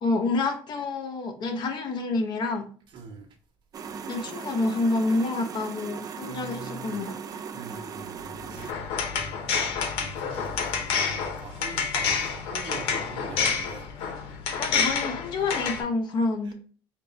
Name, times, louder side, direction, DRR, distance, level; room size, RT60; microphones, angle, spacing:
voice 1, 0.0-2.7 4.1-7.1 14.6-16.5, left 3 dB, 50° left, 0.9 m, -28 dB
voice 2, 2.9-3.3 6.3-7.0 7.5-8.7 9.0-9.4 10.0-13.9 16.4-16.5, right 3 dB, 55° right, 1.0 m, -43 dB
sound 1, 3.7-8.7, right 6 dB, 40° right, 0.4 m, -38 dB
sound 2, 7.8-11.5, left 3 dB, 30° left, 1.5 m, -45 dB
sound 3, 8.6-15.8, left 6 dB, 80° left, 0.8 m, -28 dB
4.3 x 2.0 x 4.0 m
cardioid pair, 110°, 10 cm